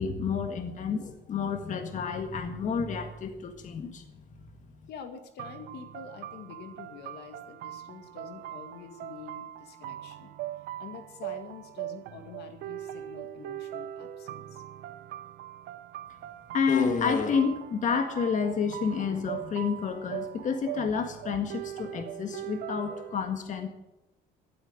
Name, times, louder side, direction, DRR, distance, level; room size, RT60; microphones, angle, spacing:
voice 1, 0.0-4.1 16.5-23.7, left 6 dB, 50° left, 6 dB, 1.7 m, -29 dB
voice 2, 4.9-10.3 10.8-14.6, left 6 dB, 75° left, 6 dB, 2.1 m, -46 dB
sound 1, 5.4-23.2, right 12 dB, 80° right, 0.9 m, -41 dB
12.5 x 9.0 x 9.5 m, 0.96 s
cardioid pair, 110°, 17 cm